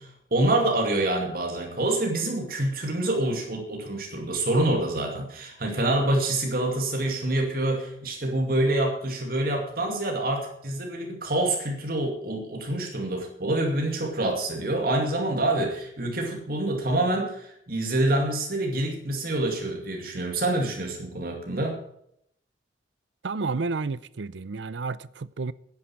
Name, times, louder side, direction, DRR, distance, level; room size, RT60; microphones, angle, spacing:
voice 1, 0.0-21.8, right 1 dB, 55° right, 2.4 m, -26 dB
voice 2, 23.2-25.5, right 4 dB, 80° right, 0.6 m, -31 dB
10.5 x 9.6 x 8.7 m
head